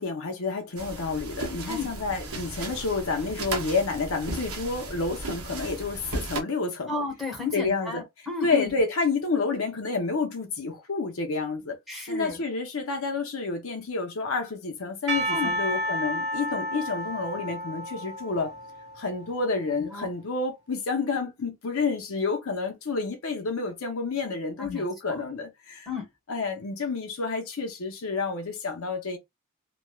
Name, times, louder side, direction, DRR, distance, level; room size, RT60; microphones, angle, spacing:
voice 1, 0.0-6.9 7.5-8.0 8.4-11.8 12.1-18.5 19.0-25.9 26.3-29.2, left 4 dB, 65° left, 0.7 m, -29 dB
sound 1, 0.8-6.4, right 2 dB, 70° right, 0.9 m, -35 dB
voice 2, 6.9-8.7 11.9-12.4 15.3-15.6 19.9-20.1 24.6-25.2 25.9-26.1, left 5 dB, ahead, 1.2 m, -33 dB
Percussion / Church bell, 15.1-19.5, equal, 50° right, 1.5 m, -31 dB
3.1 x 2.3 x 2.2 m
head